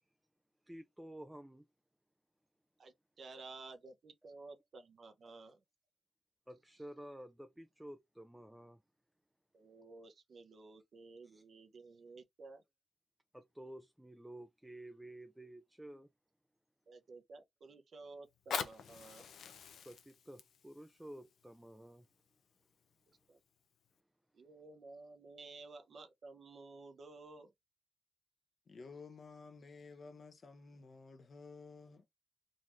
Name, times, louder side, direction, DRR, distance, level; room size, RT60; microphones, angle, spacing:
voice 1, 0.7-1.7 6.5-8.8 11.2-11.4 13.3-16.1 19.9-22.1, right 1 dB, 5° right, 0.4 m, -52 dB
voice 2, 2.8-5.6 9.5-12.6 16.9-19.3 23.3-23.4 24.3-27.5, right 3 dB, 55° right, 0.8 m, -54 dB
Fire, 18.2-23.2 23.9-24.0, left 7 dB, 80° left, 0.6 m, -45 dB
voice 3, 28.7-32.1, left 4 dB, 45° left, 0.8 m, -53 dB
3.9 x 3.1 x 2.6 m
cardioid pair, 110°, 0 cm